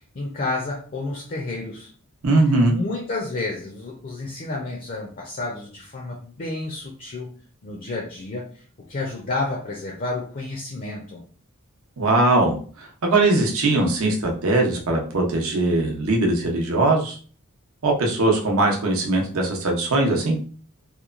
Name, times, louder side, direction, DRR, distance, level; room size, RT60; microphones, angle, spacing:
voice 1, 0.1-1.9 2.7-7.3 7.6-8.6 8.9-11.2, left 2 dB, 40° left, -1 dB, 0.4 m, -30 dB
voice 2, 2.2-2.7 12.0-17.2 17.8-20.4, right 2 dB, 70° right, 1 dB, 0.7 m, -20 dB
2.9 x 2.1 x 2.4 m, 0.42 s
head